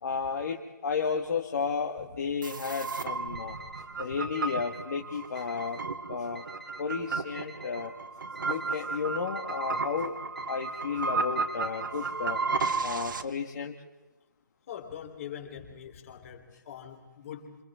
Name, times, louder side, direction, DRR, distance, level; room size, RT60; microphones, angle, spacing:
voice 1, 0.0-3.5 4.0-5.8 6.1-6.4 6.8-7.9 8.4-10.2 10.5-12.4 12.8-13.7, left 5 dB, 55° left, 1 dB, 2.1 m, -33 dB
sound 1, 2.4-13.2, right 4 dB, 70° right, 1.7 m, -33 dB
Alarm, 3.3-3.8 4.3-4.8 5.3-5.8 6.4-6.8 7.4-7.8 8.4-8.8 9.4-9.8 10.4-10.8 11.4-11.8 12.4-12.9, right 2 dB, ahead, 2.0 m, -48 dB
voice 2, 14.7-17.6, left 9 dB, 40° left, 3 dB, 3.9 m, -43 dB
28.5 x 27.5 x 3.8 m, 1.1 s
figure-of-eight pair, 150°, 11 cm